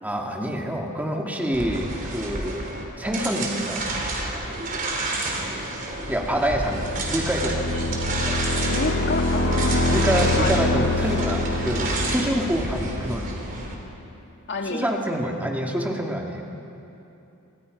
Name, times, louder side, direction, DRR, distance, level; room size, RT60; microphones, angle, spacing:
voice 1, 0.0-2.6 3.0-3.8 6.1-7.8 9.8-13.3 14.7-16.4, equal, 10° right, 0 dB, 2.5 m, -26 dB
sound 1, 1.5-13.7, right 2 dB, 40° right, 3.9 m, -30 dB
sound 2, 6.0-13.8, left 2 dB, 70° left, 4.4 m, -26 dB
voice 2, 8.7-10.6 14.5-15.0, left 3 dB, 55° left, 3 dB, 2.1 m, -30 dB
29.0 x 25.0 x 5.5 m, 2.8 s
head